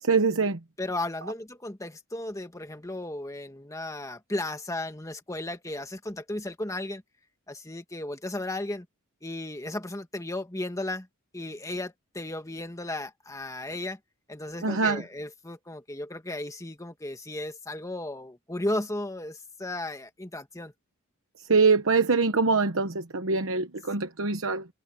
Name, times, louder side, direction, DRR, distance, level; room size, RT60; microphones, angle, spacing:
voice 1, 0.0-0.6 14.6-15.0 21.5-24.7, right 4 dB, 70° right, 1.1 m, -24 dB
voice 2, 0.8-7.0 7.5-8.9 9.2-11.1 11.3-14.0 14.3-20.7, left 1 dB, 15° left, 1.8 m, -35 dB
head